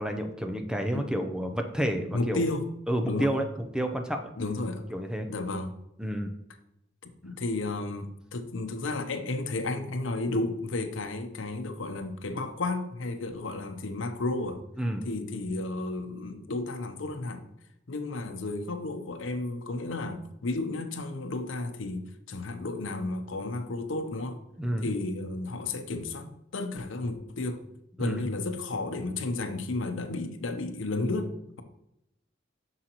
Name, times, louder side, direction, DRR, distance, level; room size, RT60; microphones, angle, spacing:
voice 1, 0.0-2.5 2.9-4.3 4.9-5.3 6.0-6.3 14.8-15.0 24.6-24.8 28.0-28.2, right 1 dB, 5° right, 5 dB, 0.6 m, -30 dB
voice 2, 2.1-2.6 3.0-3.3 4.4-4.8 5.3-5.7 7.0-14.6 15.0-17.5 17.9-24.4 24.8-26.3 26.5-27.6 28.0-31.6, left 2 dB, 85° left, 8 dB, 0.8 m, -32 dB
7.8 x 6.4 x 3.0 m, 0.83 s
head